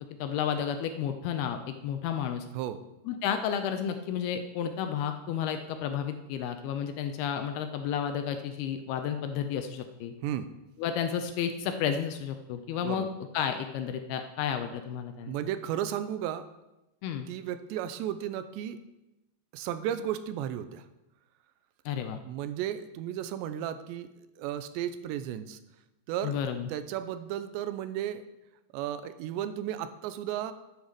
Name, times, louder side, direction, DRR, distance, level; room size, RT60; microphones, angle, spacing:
voice 1, 0.2-2.5 3.1-10.2 10.8-13.1 13.3-15.3 17.0-17.3 21.9-22.2 26.2-26.7, left 8 dB, 80° left, 7 dB, 2.4 m, -32 dB
voice 2, 15.3-16.5 17.3-18.8 19.5-20.9 22.3-24.1 24.4-25.6 26.1-26.3 26.7-28.2 28.7-30.5, right 10 dB, 90° right, 12 dB, 2.9 m, -34 dB
9.9 x 8.2 x 6.5 m, 0.96 s
omnidirectional pair, 5.0 m